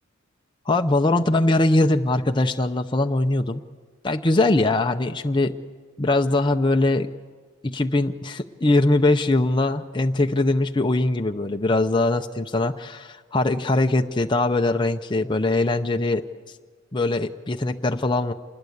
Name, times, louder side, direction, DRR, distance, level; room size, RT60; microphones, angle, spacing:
voice 1, 0.7-3.6 4.0-5.5 6.0-7.1 7.6-16.2 16.9-18.3, left 2 dB, 25° left, 5 dB, 0.7 m, -21 dB
27.5 x 20.5 x 8.1 m, 1.5 s
head